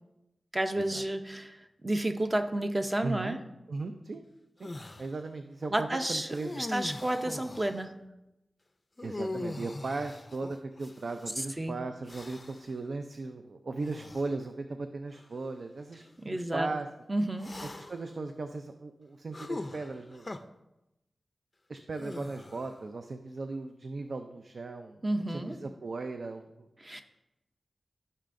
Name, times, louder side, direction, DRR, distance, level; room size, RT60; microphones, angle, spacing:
voice 1, 0.5-3.4 5.7-6.3 6.6-8.0 11.4-11.8 16.2-16.7 17.1-17.5 25.0-25.6 26.8-27.0, right 1 dB, 25° right, 6 dB, 0.7 m, -31 dB
voice 2, 3.0-3.4 3.7-4.2 4.6-4.7 5.0-6.7 9.0-16.0 16.3-16.9 17.8-20.5 21.7-25.0 25.3-26.7, right 3 dB, 60° right, 7 dB, 0.4 m, -37 dB
sound 1, 4.6-5.1 6.3-7.8 9.0-11.3 12.1-12.7 13.8-14.3 15.1-15.3 17.4-18.1 19.3-20.4 22.0-22.8, left 2 dB, 30° left, 0.4 m, -41 dB
13.5 x 5.5 x 2.6 m, 0.93 s
wide cardioid pair, 100°, 0 cm